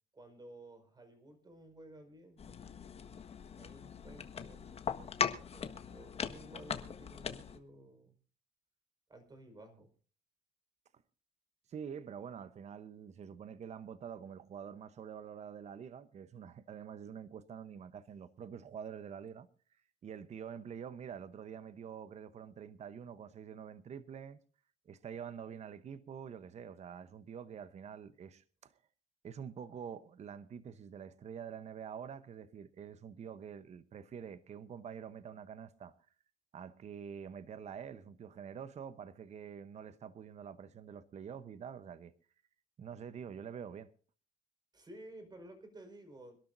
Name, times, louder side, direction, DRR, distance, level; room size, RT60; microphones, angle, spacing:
voice 1, 0.1-2.4 3.5-8.1 9.1-9.9 44.7-46.4, right 1 dB, 25° right, 5.0 m, -54 dB
sound 1, 2.4-7.6, left 6 dB, 35° left, 1.5 m, -40 dB
voice 2, 11.7-19.5 20.0-24.4 24.9-28.7 29.2-35.9 36.5-42.1 42.8-43.9, right 7 dB, 40° right, 0.9 m, -46 dB
26.0 x 12.5 x 2.6 m
cardioid pair, 110°, 17 cm